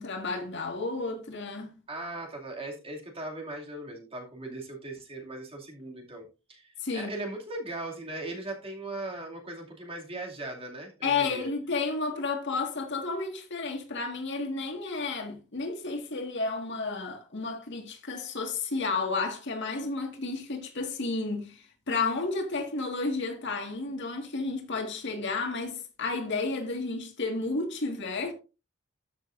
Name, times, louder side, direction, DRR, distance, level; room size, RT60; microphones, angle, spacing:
voice 1, 0.0-1.8 6.8-7.1 11.0-28.3, left 3 dB, 60° left, 1.8 m, -32 dB
voice 2, 1.9-11.5, right 2 dB, 30° right, 2.5 m, -39 dB
13.0 x 6.3 x 2.6 m
head